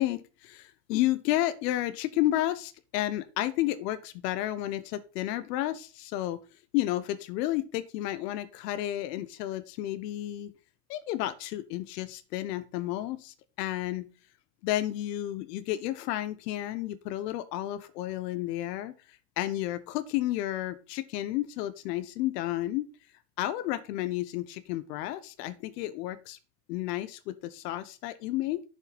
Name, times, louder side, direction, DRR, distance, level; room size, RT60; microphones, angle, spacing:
voice 1, 0.0-6.4 6.7-10.5 10.9-14.1 14.6-22.9 23.4-26.4 26.7-28.6, left 14 dB, 80° left, 13 dB, 1.0 m, -31 dB
7.1 x 6.8 x 4.0 m, 0.34 s
supercardioid pair, 110°, 47 cm